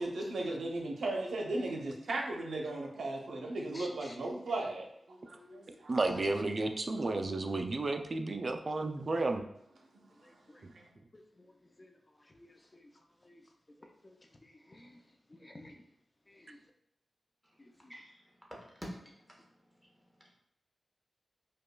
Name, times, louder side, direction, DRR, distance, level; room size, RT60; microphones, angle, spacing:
voice 1, 0.0-5.9 10.8-10.9, right 2 dB, 85° right, 0 dB, 0.6 m, -36 dB
voice 2, 3.7-4.2 5.4-6.4 10.2-10.7 11.1-12.9 13.2-13.5 13.8-15.0 15.3-15.8 16.3-16.6 17.6-17.9, left 1 dB, 25° left, 3 dB, 0.5 m, -53 dB
voice 3, 5.9-9.4, right 2 dB, 45° right, 6 dB, 0.3 m, -32 dB
voice 4, 17.9-19.4 19.8-19.9, equal, ahead, -3 dB, 1.0 m, -48 dB
5.0 x 2.3 x 2.2 m, 0.75 s
wide cardioid pair, 80°, 0 cm